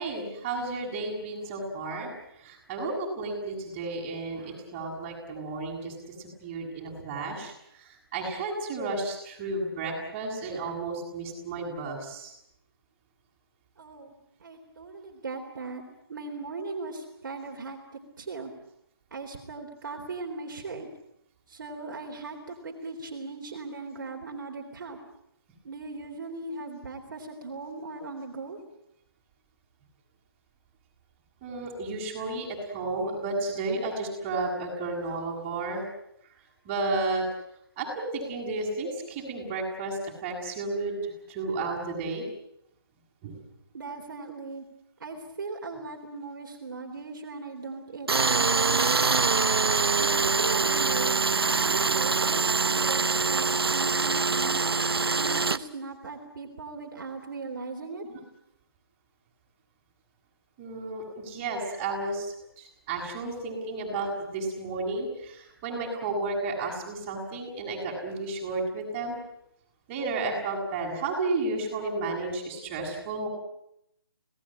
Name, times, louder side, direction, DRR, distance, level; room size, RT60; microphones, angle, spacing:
voice 1, 0.0-12.3 31.4-35.8 36.6-37.3 37.8-42.2 43.2-43.4 58.0-58.1 60.6-69.2 69.9-73.3, right 3 dB, 20° right, -2 dB, 7.4 m, -32 dB
voice 2, 13.8-14.1 14.4-15.8 16.1-17.8 18.2-18.5 19.1-20.9 21.5-25.0 25.6-28.6 43.7-44.6 45.0-49.4 50.0-54.7 55.1-58.0, right 3 dB, 55° right, 1 dB, 3.7 m, -38 dB
Tools, 48.1-55.6, right 4 dB, 75° right, 1.1 m, -24 dB
27.5 x 18.5 x 8.9 m, 0.79 s
figure-of-eight pair, 160°, 13 cm